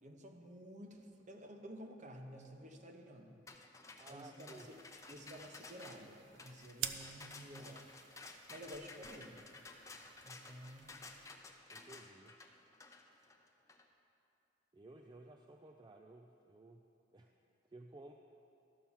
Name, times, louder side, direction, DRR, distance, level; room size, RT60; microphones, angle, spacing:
voice 1, 0.0-3.4 4.1-4.8 5.1-7.8 8.5-9.4 10.2-10.9, equal, 40° right, 4 dB, 0.9 m, -52 dB
sound 1, 3.5-13.8, left 3 dB, 15° left, 0.6 m, -54 dB
voice 2, 4.0-4.7 7.6-7.9 11.7-12.3 14.7-16.8 17.1-17.3 17.7-18.1, right 2 dB, 25° right, 3 dB, 0.4 m, -56 dB
sound 2, 4.5-11.3, right 9 dB, 75° right, 0.5 m, -50 dB
12.5 x 5.9 x 7.1 m, 2.9 s
head